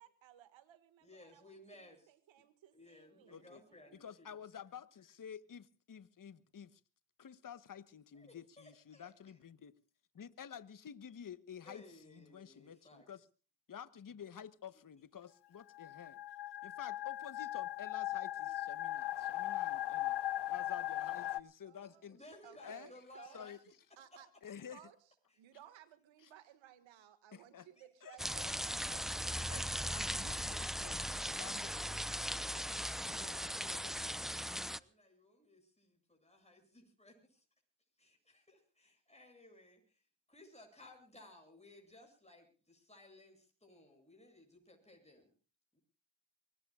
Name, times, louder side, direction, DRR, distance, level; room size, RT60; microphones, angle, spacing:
voice 1, 0.0-4.0 21.6-22.1 22.4-23.4 24.0-24.3 24.7-25.0 25.4-30.1, right 11 dB, 90° right, 1.9 m, -60 dB
voice 2, 1.0-2.1 2.7-4.3 8.1-9.1 11.6-13.0 18.4-18.5 22.1-23.5 27.8-28.2 34.7-37.4 38.0-40.0 40.3-45.3 45.7-45.8, left 2 dB, 15° left, 8.0 m, -59 dB
voice 3, 3.3-3.6 4.0-6.8 7.2-9.7 10.1-13.2 13.7-16.2 16.6-20.2 20.5-22.2 22.6-22.9 23.3-23.6 24.4-24.8 26.2-26.3 27.3-27.7 28.0-28.2 28.4-28.6 29.5-32.7 33.0-34.5, left 8 dB, 45° left, 1.2 m, -51 dB
sound 1, 15.6-21.4, left 15 dB, 65° left, 0.7 m, -38 dB
sound 2, 28.2-34.8, equal, ahead, 0.7 m, -39 dB
24.0 x 20.0 x 2.4 m
supercardioid pair, 45°, 45 cm